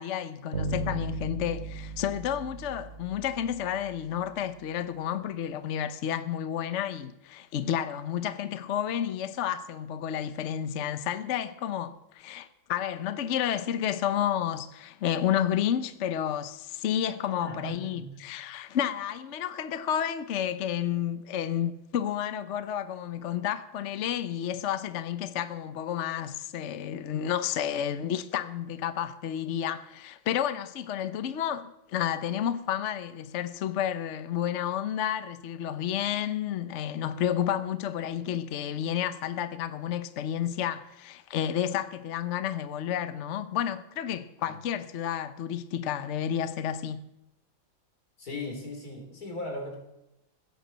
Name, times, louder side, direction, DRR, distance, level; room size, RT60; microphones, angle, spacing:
voice 1, 0.0-47.0, left 10 dB, 65° left, 0.7 m, -31 dB
Bass guitar, 0.5-3.6, right 2 dB, 65° right, 3.2 m, -36 dB
voice 2, 17.4-18.2 44.5-44.6 48.2-49.8, left 2 dB, 50° left, 4.0 m, -38 dB
16.0 x 9.8 x 7.5 m
omnidirectional pair, 2.1 m